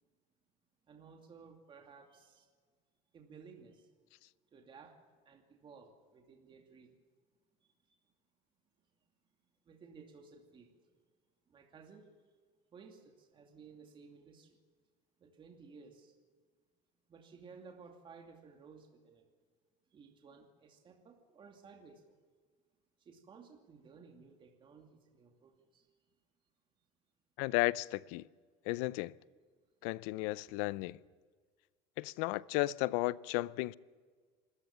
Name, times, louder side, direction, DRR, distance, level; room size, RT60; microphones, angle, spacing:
voice 1, 0.9-2.5 3.1-3.9 4.5-5.0 5.3-6.9 7.9-8.0 9.7-10.8 11.5-12.1 12.7-14.6 15.2-16.2 17.1-19.2 19.9-22.1 23.0-25.9 30.5-30.6, right 5 dB, 30° right, 2.5 m, -56 dB
voice 2, 27.4-28.2 28.6-29.1 29.8-31.0 32.0-33.7, left 20 dB, 80° left, 0.6 m, -34 dB
26.5 x 14.0 x 7.3 m
cardioid pair, 130°, 16 cm